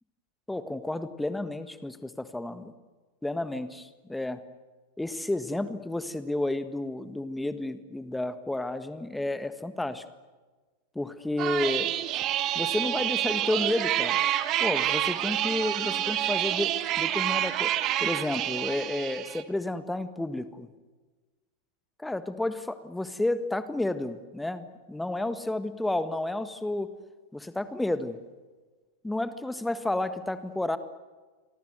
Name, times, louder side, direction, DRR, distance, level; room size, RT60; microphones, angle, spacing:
voice 1, 0.5-2.7 3.2-4.4 5.0-10.0 10.9-11.9 12.5-14.2 14.6-16.7 17.0-17.7 18.0-20.7 22.0-26.9 27.3-28.2 29.0-30.8, left 2 dB, 5° left, 12 dB, 1.5 m, -31 dB
sound 1, 11.4-19.4, right 12 dB, 35° right, 1.9 m, -28 dB
29.5 x 24.0 x 8.0 m, 1.3 s
figure-of-eight pair, 90°, 0 cm